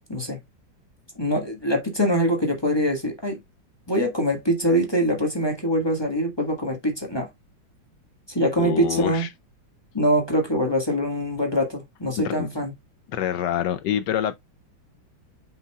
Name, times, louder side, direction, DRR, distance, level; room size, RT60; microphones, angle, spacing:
voice 1, 1.2-3.4 3.9-7.3 8.3-9.3 9.9-12.7, equal, 15° left, 1.4 m, -23 dB
voice 2, 8.6-9.3 12.2-12.5 13.1-14.4, left 10 dB, 70° left, 1.1 m, -26 dB
7.9 x 5.7 x 2.3 m
omnidirectional pair, 2.3 m